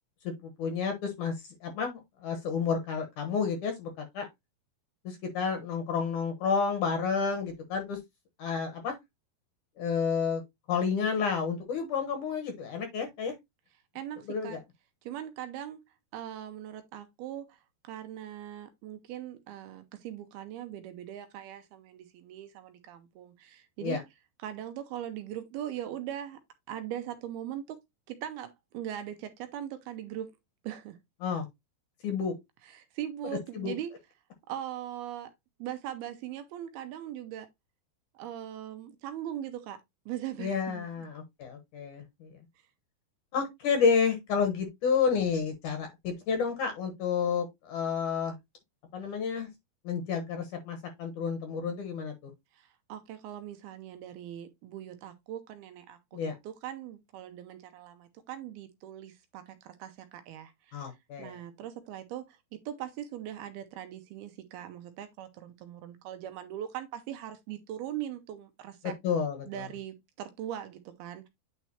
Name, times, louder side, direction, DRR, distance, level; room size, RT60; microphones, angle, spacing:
voice 1, 0.4-1.3 1.6-4.3 5.0-8.0 8.4-9.0 9.8-10.4 10.7-13.3 14.3-14.6 23.8-24.0 31.2-31.5 32.0-32.3 33.5-33.7 40.4-42.3 43.3-48.4 48.9-49.5 49.8-52.1 56.1-56.3 60.7-61.3 69.0-69.6, left 6 dB, 65° left, 2.2 m, -30 dB
voice 2, 13.9-14.6 15.0-15.8 16.1-24.0 24.4-26.4 26.7-27.8 28.1-30.3 30.6-31.0 32.6-33.9 34.5-35.3 35.6-37.5 38.1-39.8 40.1-41.1 52.5-68.9 69.5-71.3, right 11 dB, 80° right, 2.5 m, -40 dB
9.1 x 4.5 x 2.8 m
omnidirectional pair, 4.8 m